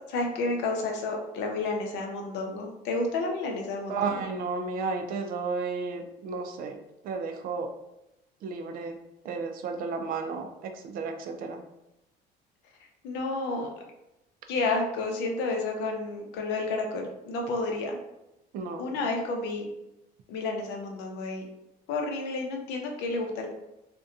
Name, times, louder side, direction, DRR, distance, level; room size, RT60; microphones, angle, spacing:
voice 1, 0.1-4.2 13.0-13.7 14.5-18.0 18.8-19.7 20.3-21.4 21.9-23.5, left 3 dB, 80° left, 2 dB, 0.6 m, -30 dB
voice 2, 3.9-6.8 7.0-7.7 8.4-9.0 9.2-11.6 18.5-18.8, right 4 dB, 55° right, 5 dB, 0.4 m, -33 dB
2.7 x 2.2 x 2.4 m, 0.90 s
cardioid pair, 125°, 17 cm